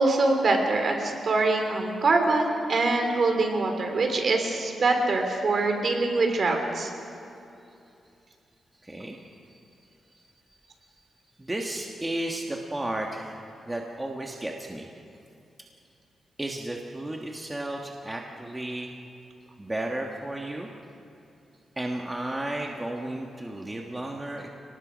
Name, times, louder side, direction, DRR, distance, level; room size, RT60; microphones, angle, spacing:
voice 1, 0.0-6.9, right 3 dB, 50° right, 4 dB, 3.2 m, -24 dB
voice 2, 8.8-9.2 11.4-14.9 16.4-18.9 19.6-20.7 21.8-24.5, right 1 dB, 15° right, 0 dB, 1.4 m, -33 dB
29.5 x 19.0 x 5.2 m, 2.6 s
cardioid pair, 115°, 0 cm